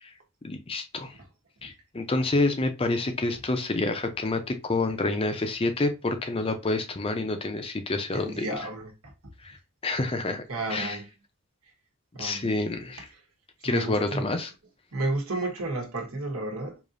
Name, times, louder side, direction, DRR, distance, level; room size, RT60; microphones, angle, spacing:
voice 1, 0.4-1.1 1.6-8.5 9.4-9.6 9.8-10.4 10.7-11.0 12.2-13.0 13.6-14.5, left 2 dB, 25° left, 0.5 m, -28 dB
voice 2, 8.1-9.1 9.4-9.6 10.5-11.1 11.6-11.7 12.1-12.8 13.1-13.2 13.6-14.3 14.9-16.8, right 2 dB, 75° right, 1.3 m, -33 dB
4.9 x 2.8 x 2.5 m
head